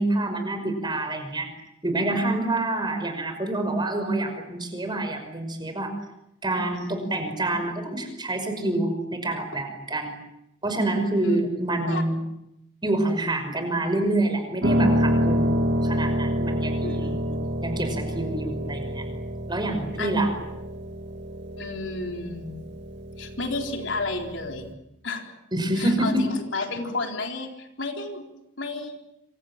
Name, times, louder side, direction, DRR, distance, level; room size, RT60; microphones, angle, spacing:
voice 1, 0.0-1.5 1.8-5.9 6.4-10.1 10.6-12.2 12.8-15.5 15.8-17.1 17.6-19.1 19.5-20.3 25.5-26.3, right 2 dB, 25° right, 6 dB, 5.6 m, -27 dB
voice 2, 6.7-7.2 11.2-11.4 11.9-12.0 16.8-17.4 20.0-20.2 21.6-22.6 23.2-24.7 25.0-25.3 25.8-28.3 28.6-29.0, left 3 dB, 70° left, 3 dB, 4.1 m, -32 dB
Piano, 14.6-24.7, equal, 60° right, 2.8 m, -28 dB
27.0 x 26.5 x 7.5 m, 0.85 s
head